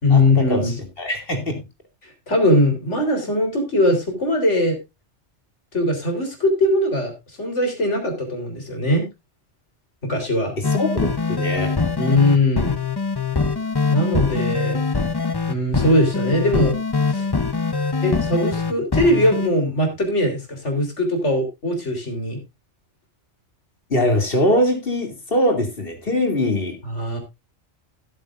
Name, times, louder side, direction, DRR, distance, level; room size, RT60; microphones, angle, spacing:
voice 1, 0.0-0.7 2.0-4.8 5.7-9.0 10.0-10.5 12.0-12.8 13.9-14.8 15.5-16.8 17.1-17.3 18.0-22.4 26.8-27.2, left 1 dB, 85° left, 4 dB, 4.0 m, -20 dB
voice 2, 1.0-1.6 10.7-11.7 23.9-26.8, left 1 dB, 55° left, 4 dB, 3.0 m, -22 dB
sound 1, 10.6-19.5, left 4 dB, 25° left, 0.7 m, -23 dB
16.5 x 8.8 x 2.5 m, 0.23 s
omnidirectional pair, 1.2 m